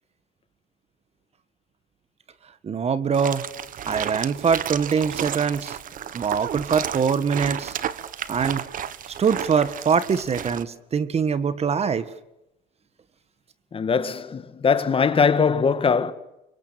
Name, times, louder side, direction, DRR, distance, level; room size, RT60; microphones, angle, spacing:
voice 1, 2.6-3.5 3.9-5.8 6.1-7.8 8.3-8.7 9.2-12.1, right 6 dB, 40° right, 1.7 m, -23 dB
sound 1, 3.1-10.6, right 9 dB, 55° right, 1.4 m, -32 dB
voice 2, 13.7-16.1, left 5 dB, 30° left, 1.9 m, -21 dB
25.5 x 24.0 x 8.9 m
cardioid pair, 110°, 17 cm